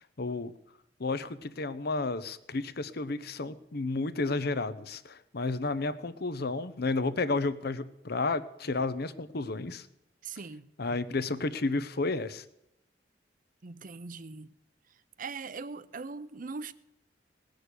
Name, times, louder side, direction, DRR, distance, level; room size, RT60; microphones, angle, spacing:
voice 1, 0.2-0.5 1.0-9.9 10.8-12.4, left 3 dB, 60° left, 0.8 m, -32 dB
voice 2, 10.2-10.7 13.6-14.5 15.2-16.7, right 4 dB, 50° right, 0.7 m, -40 dB
19.0 x 6.6 x 8.2 m
head